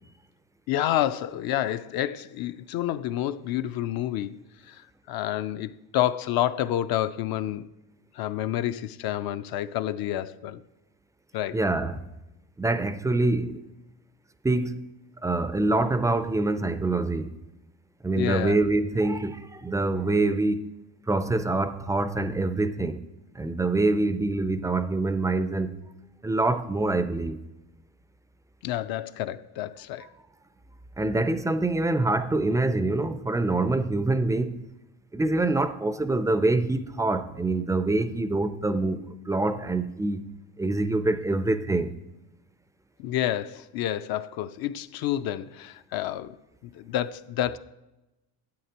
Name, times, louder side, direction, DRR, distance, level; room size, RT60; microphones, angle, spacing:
voice 1, 0.7-4.4 4.7-7.6 8.1-10.6 11.3-11.6 18.2-18.6 28.6-30.1 43.0-46.4 46.7-47.6, left 12 dB, 65° left, 0.5 m, -29 dB
voice 2, 11.5-12.1 12.6-13.6 14.4-14.9 15.2-17.3 18.0-20.7 21.1-23.0 23.4-25.8 26.2-27.4 31.0-34.7 35.1-40.3 40.6-41.9, right 2 dB, 10° right, 0.3 m, -25 dB
11.5 x 8.7 x 2.9 m
cardioid pair, 120°, 39 cm